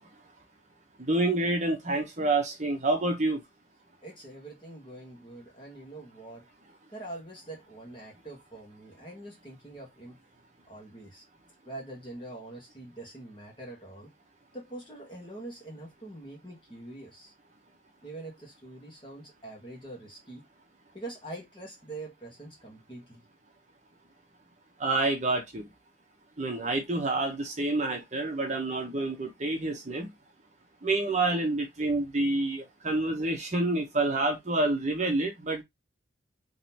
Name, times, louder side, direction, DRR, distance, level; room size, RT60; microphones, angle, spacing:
voice 1, 1.0-3.4 24.8-25.7 26.4-30.1 30.8-35.6, right 2 dB, 40° right, 0.9 m, -28 dB
voice 2, 4.0-6.4 6.9-10.1 10.7-11.2 11.6-14.1 14.5-17.3 18.0-20.4 20.9-23.2, right 2 dB, 25° left, 1.5 m, -44 dB
3.8 x 3.1 x 2.8 m
head